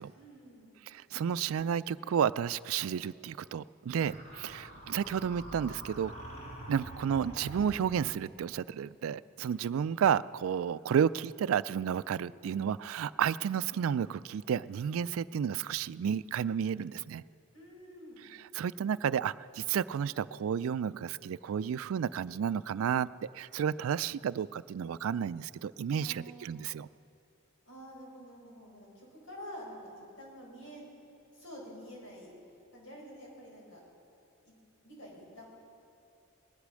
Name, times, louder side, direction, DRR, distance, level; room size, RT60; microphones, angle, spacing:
voice 1, 0.1-0.8 17.5-18.3 25.9-26.6 27.6-31.0 31.3-32.4 32.7-33.8 34.4-34.5 34.8-35.5, equal, 75° left, -3 dB, 4.8 m, -48 dB
voice 2, 0.9-6.1 6.7-17.2 18.5-26.9, right 8 dB, 80° right, 17 dB, 0.3 m, -32 dB
sound 1, 3.9-8.3, right 1 dB, 40° left, 4.2 m, -46 dB
19.0 x 11.5 x 6.3 m, 2.6 s
head